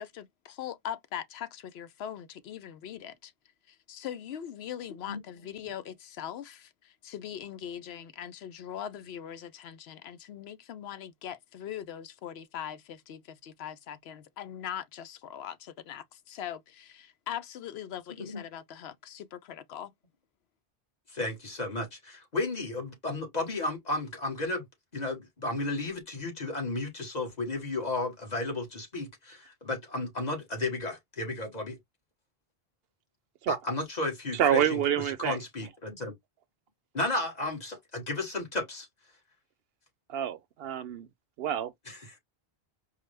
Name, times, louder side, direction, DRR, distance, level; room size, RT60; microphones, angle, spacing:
voice 1, 0.0-3.3 3.7-19.9, left 10 dB, 85° left, 0.8 m, -41 dB
voice 2, 18.1-18.4 21.1-24.6 24.9-31.8 33.5-36.1 36.9-38.9 41.9-42.2, left 2 dB, 45° left, 1.5 m, -33 dB
voice 3, 34.3-35.4 40.1-41.1 41.4-41.7, right 10 dB, 75° right, 0.8 m, -27 dB
4.7 x 2.1 x 3.2 m
omnidirectional pair, 1.0 m